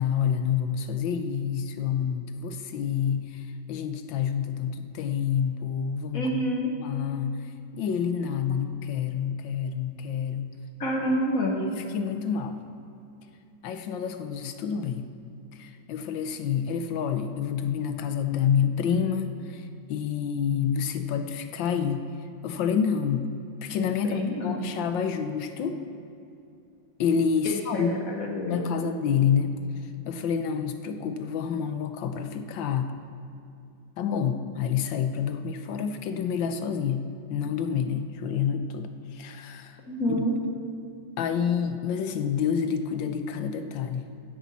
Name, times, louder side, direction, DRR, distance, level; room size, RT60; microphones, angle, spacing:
voice 1, 0.0-6.5 6.8-7.4 7.7-10.6 11.5-12.6 13.6-15.1 15.6-22.1 22.4-23.3 23.6-25.8 27.0-27.9 28.5-29.6 30.1-33.0 34.0-39.8 40.1-40.2 41.2-44.1, left 7 dB, 75° left, 8 dB, 1.4 m, -28 dB
voice 2, 6.1-6.7 10.8-11.6 24.0-24.6 27.4-28.8 39.9-40.3, equal, 50° left, 1 dB, 1.6 m, -28 dB
15.5 x 10.0 x 4.2 m, 2.7 s
omnidirectional pair, 2.1 m